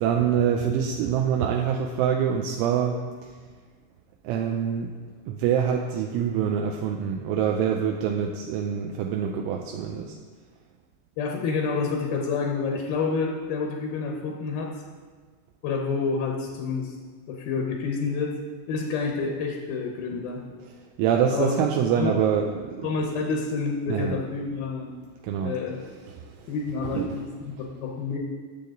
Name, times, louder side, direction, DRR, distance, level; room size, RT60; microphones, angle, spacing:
voice 1, 0.0-3.3 4.2-4.9 5.3-10.2 21.0-22.9 23.9-24.2 25.2-25.6 26.1-26.5 26.8-27.2, right 8 dB, 80° right, 2 dB, 2.9 m, -25 dB
voice 2, 11.2-14.7 15.6-17.0 17.3-18.3 18.7-20.4 21.3-21.5 22.0-22.1 22.8-24.9 25.4-25.8 26.5-27.2 27.8-28.2, left 4 dB, 75° left, 0 dB, 2.3 m, -28 dB
19.0 x 7.4 x 3.9 m, 1.5 s
omnidirectional pair, 6.0 m